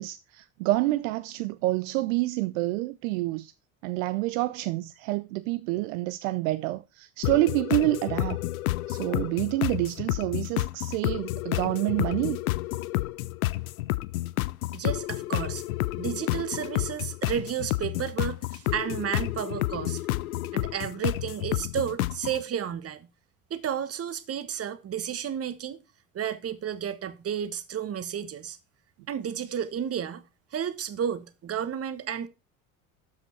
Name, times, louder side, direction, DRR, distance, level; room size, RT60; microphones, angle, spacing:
voice 1, 0.0-3.5 3.8-8.4 8.9-12.4, right 18 dB, 65° right, 0.6 m, -28 dB
sound 1, 7.2-22.4, left 18 dB, 75° left, 0.6 m, -30 dB
voice 2, 14.7-15.6 16.0-20.0 20.5-23.1 23.5-25.8 26.1-28.6 29.1-30.2 30.5-32.3, right 8 dB, 35° right, 1.2 m, -32 dB
12.5 x 5.1 x 4.4 m
hypercardioid pair, 65°, 43 cm